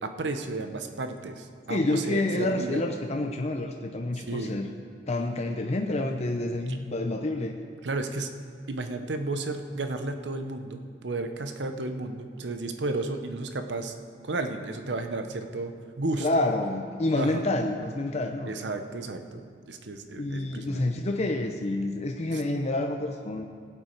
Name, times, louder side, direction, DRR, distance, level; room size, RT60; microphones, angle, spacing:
voice 1, 0.0-2.8 4.1-4.6 6.7-6.8 7.8-8.3 8.7-13.9 14.2-16.3 17.2-17.4 18.5-20.8 22.3-22.4, right 2 dB, 90° right, 7 dB, 0.8 m, -33 dB
voice 2, 1.7-4.7 5.1-7.5 16.2-18.5 20.1-23.5, left 2 dB, 40° left, 3 dB, 0.6 m, -28 dB
17.0 x 8.2 x 4.5 m, 2.2 s
head